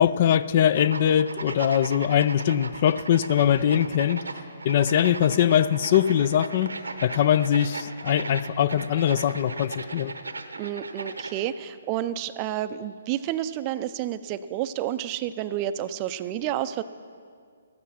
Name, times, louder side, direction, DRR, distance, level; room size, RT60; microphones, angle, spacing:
voice 1, 0.0-4.2 4.6-6.7 7.0-10.1, left 10 dB, 45° left, 15 dB, 0.4 m, -22 dB
sound 1, 0.7-11.5, right 3 dB, 90° right, 1.0 m, -37 dB
voice 2, 10.6-16.8, right 12 dB, 30° right, 13 dB, 0.4 m, -30 dB
14.0 x 9.6 x 5.7 m, 2.1 s
hypercardioid pair, 140°, 0 cm